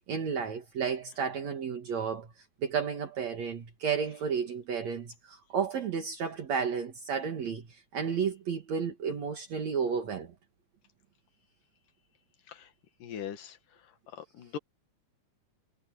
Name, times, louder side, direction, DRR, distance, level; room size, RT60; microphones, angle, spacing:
voice 1, 0.1-2.3 2.6-7.7 7.9-10.3, right 6 dB, 60° right, 2.9 m, -32 dB
voice 2, 13.0-13.6 14.1-14.6, left 8 dB, 90° left, 3.4 m, -40 dB
omnidirectional pair, 3.6 m